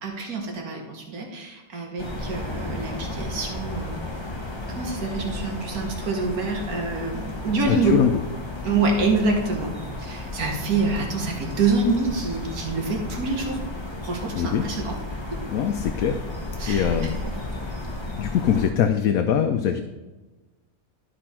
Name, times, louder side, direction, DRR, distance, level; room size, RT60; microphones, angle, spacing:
voice 1, 0.0-4.1 4.7-8.0 8.6-9.7 10.0-13.6 14.0-14.9 16.6-17.0, right 3 dB, 80° right, 1 dB, 1.8 m, -26 dB
sound 1, 2.0-18.7, left 2 dB, 20° left, 1.1 m, -33 dB
voice 2, 7.7-8.1 14.4-14.6 15.5-17.1 18.2-19.8, left 8 dB, 80° left, 6 dB, 1.1 m, -23 dB
12.0 x 5.1 x 4.4 m, 1.2 s
omnidirectional pair, 1.5 m